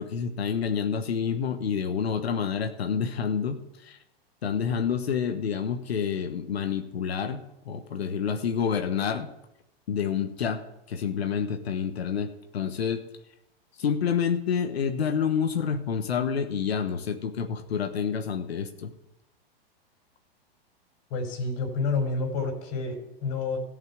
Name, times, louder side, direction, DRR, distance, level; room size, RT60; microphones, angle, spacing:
voice 1, 0.0-4.0 4.4-9.3 9.9-10.6 10.9-13.0 13.8-18.9, left 7 dB, 90° left, 6 dB, 1.3 m, -28 dB
voice 2, 21.1-23.6, left 4 dB, 50° left, 3 dB, 4.0 m, -29 dB
13.5 x 5.7 x 9.4 m, 0.87 s
hypercardioid pair, 120°, 30 cm